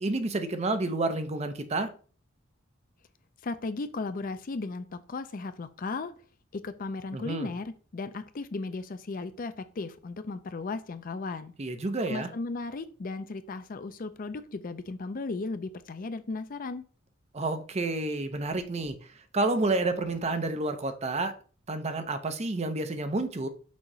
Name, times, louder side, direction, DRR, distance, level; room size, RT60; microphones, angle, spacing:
voice 1, 0.0-1.9 7.1-7.5 11.6-12.3 17.3-19.0 19.3-21.3 21.7-23.5, right 2 dB, 30° right, 8 dB, 0.7 m, -29 dB
voice 2, 3.4-6.1 6.5-11.5 12.1-16.8, left 3 dB, 40° left, 11 dB, 0.4 m, -36 dB
6.2 x 3.0 x 5.4 m, 0.40 s
head